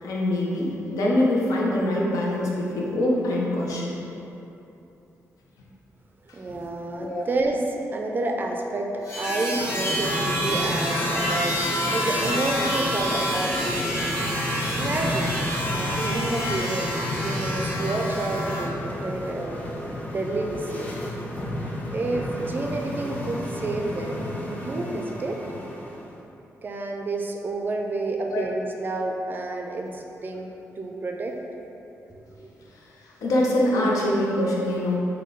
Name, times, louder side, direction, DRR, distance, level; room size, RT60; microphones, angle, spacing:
voice 1, 0.0-4.0 6.5-6.6 7.0-7.2 28.3-28.4 33.2-35.0, left 1 dB, 85° left, -4 dB, 0.6 m, -24 dB
voice 2, 6.3-8.9 9.2-14.3 14.8-15.4 15.6-19.7 20.1-20.9 21.9-25.4 26.6-31.3 32.3-32.5, right 2 dB, 35° right, 2 dB, 0.4 m, -30 dB
sound 1, 9.0-18.7, equal, 50° left, 1.2 m, -28 dB
sound 2, 9.5-26.1, left 1 dB, 25° left, 0.5 m, -32 dB
3.6 x 2.2 x 3.7 m, 2.9 s
cardioid pair, 90°, 6 cm